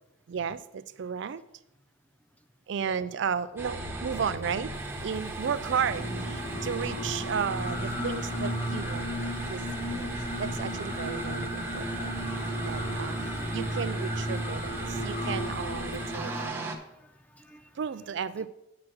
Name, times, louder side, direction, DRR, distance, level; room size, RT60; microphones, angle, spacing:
voice 1, 0.3-1.4 2.7-4.7 5.0-9.6 9.9-12.1 12.6-13.2 13.5-16.8 17.8-18.5, right 7 dB, 65° right, 0.4 m, -34 dB
sound 1, 3.6-16.8, right 1 dB, 10° right, 1.0 m, -37 dB
Singing, 5.7-16.5, equal, 30° left, 1.2 m, -34 dB
voice 2, 12.6-14.0 17.0-17.7, left 1 dB, 10° left, 0.4 m, -51 dB
6.1 x 5.8 x 6.3 m
head